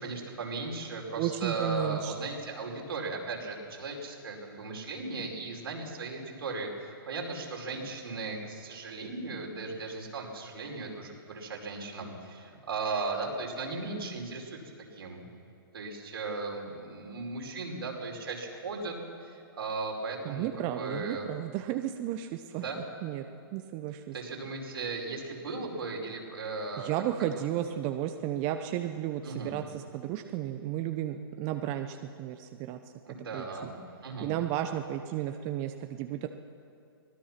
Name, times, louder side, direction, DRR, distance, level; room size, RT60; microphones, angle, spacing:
voice 1, 0.0-14.6 14.9-15.2 15.7-18.9 19.2-20.5 20.7-21.3 22.5-22.8 24.1-26.9 27.3-27.4 29.2-29.5 33.1-33.7 34.0-34.3, right 3 dB, 80° right, -1 dB, 5.2 m, -37 dB
voice 2, 1.2-2.1 20.2-22.6 23.0-23.2 23.5-24.1 26.8-32.8 33.3-33.7 34.2-36.3, right 12 dB, 35° right, 7 dB, 0.9 m, -33 dB
24.0 x 18.0 x 5.9 m, 2.4 s
hypercardioid pair, 125°, 13 cm